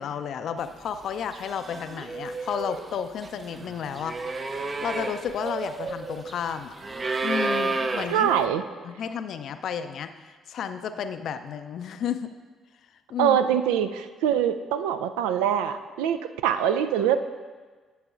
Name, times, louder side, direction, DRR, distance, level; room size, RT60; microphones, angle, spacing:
voice 1, 0.0-4.2 4.4-6.7 7.2-8.4 8.8-12.3 13.1-13.4, left 7 dB, 60° left, 10 dB, 0.4 m, -32 dB
sound 1, 0.9-1.1 1.3-8.5, right 3 dB, 35° right, 0.6 m, -32 dB
voice 2, 8.1-8.6 13.2-17.2, right 9 dB, 75° right, 9 dB, 0.3 m, -24 dB
10.5 x 7.8 x 2.5 m, 1.4 s
figure-of-eight pair, 45°, 0 cm